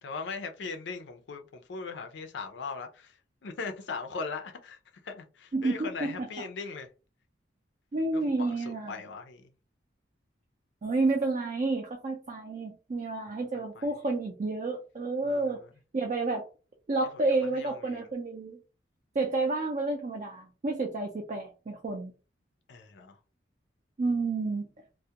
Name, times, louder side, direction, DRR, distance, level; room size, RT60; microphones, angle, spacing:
voice 1, 0.0-3.2 3.4-4.8 5.0-6.9 8.1-9.5 13.5-13.9 15.2-15.7 17.1-18.1 22.7-23.2, left 4 dB, 75° left, 0.5 m, -39 dB
voice 2, 5.5-6.4 7.9-8.9 10.8-15.6 15.9-16.4 16.9-18.6 19.2-22.1 24.0-24.7, right 3 dB, 40° right, 0.4 m, -30 dB
2.3 x 2.1 x 2.8 m
head